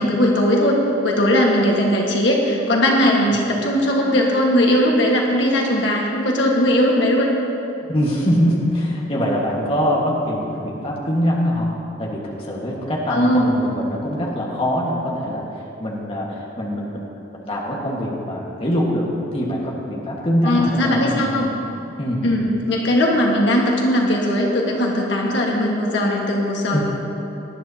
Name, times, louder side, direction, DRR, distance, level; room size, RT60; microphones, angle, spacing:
voice 1, 0.0-7.3 13.1-13.5 20.4-21.5 22.2-26.8, left 1 dB, 65° left, -1 dB, 1.5 m, -18 dB
voice 2, 7.9-11.7 12.0-15.4 15.8-17.1 17.5-19.1 19.3-21.4 22.0-22.2 26.7-26.8, equal, 30° left, -4 dB, 1.5 m, -23 dB
18.5 x 10.5 x 2.8 m, 3.0 s
head